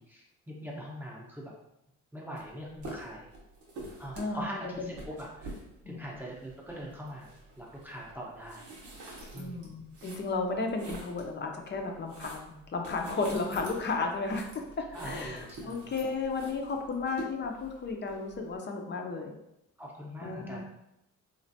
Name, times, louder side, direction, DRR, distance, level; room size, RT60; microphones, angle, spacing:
voice 1, 0.0-1.5 2.1-3.3 4.0-5.5 5.9-7.3 7.6-8.7 9.3-9.7 14.9-15.9 19.8-20.6, equal, 5° right, -4 dB, 0.7 m, -42 dB
sound 1, 2.4-2.5 2.7-11.3 11.7-18.5, right 2 dB, 90° right, 0.9 m, -46 dB
voice 2, 4.1-4.5 4.8-4.9 5.8-6.1 9.4-19.3 20.2-20.6, left 3 dB, 35° left, 3 dB, 0.5 m, -34 dB
3.1 x 2.4 x 2.6 m, 0.84 s
cardioid pair, 90°, 30 cm